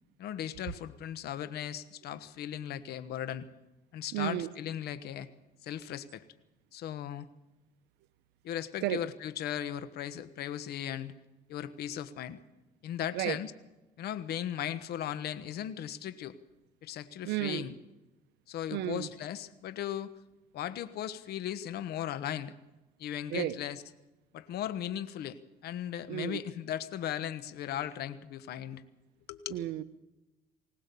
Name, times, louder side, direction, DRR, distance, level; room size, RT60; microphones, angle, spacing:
voice 1, 0.2-3.5 3.9-5.3 5.6-6.2 6.7-7.3 8.4-11.1 11.5-12.4 12.8-13.5 14.0-16.4 16.8-17.7 18.5-20.1 20.5-22.5 23.0-23.8 24.3-28.8 29.3-29.5, left 10 dB, 70° left, 12 dB, 1.2 m, -37 dB
voice 2, 4.1-4.5 8.8-9.0 13.1-13.4 17.2-17.7 18.7-19.1 23.3-23.5 26.1-26.4 29.5-29.8, right 14 dB, 90° right, 13 dB, 0.8 m, -32 dB
21.0 x 18.0 x 6.9 m, 1.0 s
cardioid pair, 110°, 17 cm